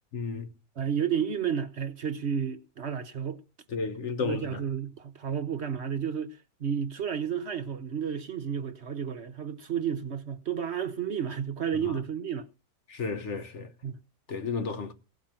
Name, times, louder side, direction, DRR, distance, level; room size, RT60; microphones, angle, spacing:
voice 1, 0.1-0.5 3.7-4.6 11.8-12.0 12.9-13.7 14.3-14.9, left 4 dB, 55° left, 1.3 m, -33 dB
voice 2, 0.8-3.4 4.2-12.5 13.8-14.0, right 7 dB, 55° right, 1.0 m, -32 dB
17.0 x 5.8 x 8.9 m
omnidirectional pair, 1.6 m